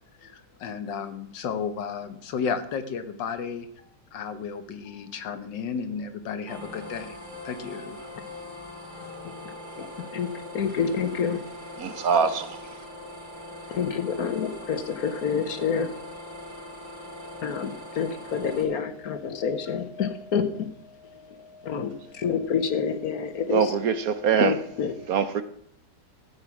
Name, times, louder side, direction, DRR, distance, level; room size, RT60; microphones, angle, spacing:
voice 1, 0.2-7.2 7.4-8.2, left 6 dB, 85° left, 1.8 m, -33 dB
sound 1, 6.5-18.6, left 1 dB, 25° right, 2.7 m, -41 dB
voice 2, 9.2-11.4 12.8-13.2 13.7-15.9 16.5-16.6 17.0-23.7 24.3-25.1, left 6 dB, 60° left, 1.5 m, -29 dB
voice 3, 11.8-12.6 23.5-24.6 25.1-25.4, right 7 dB, 60° right, 1.1 m, -23 dB
13.0 x 8.4 x 6.0 m
omnidirectional pair, 1.9 m